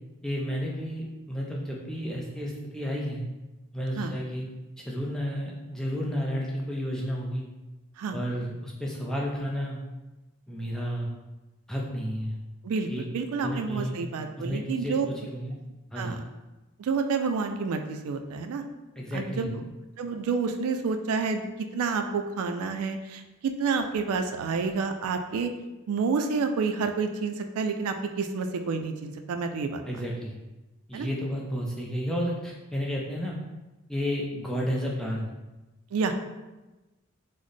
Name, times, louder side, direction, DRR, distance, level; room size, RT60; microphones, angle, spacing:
voice 1, 0.2-3.2 3.7-4.5 4.8-7.5 8.1-9.8 10.5-11.1 11.7-12.4 12.9-13.1 13.4-13.9 14.4-15.6 15.9-16.2 19.0-19.7 29.8-30.4 30.9-33.4 33.9-35.3, equal, 5° left, -3 dB, 0.3 m, -32 dB
voice 2, 12.6-15.1 16.0-16.2 16.8-18.6 19.1-19.6 20.0-25.5 25.9-30.0 30.9-31.1 35.9-36.1, right 4 dB, 85° right, 7 dB, 0.3 m, -29 dB
3.9 x 2.0 x 3.2 m, 1.1 s
head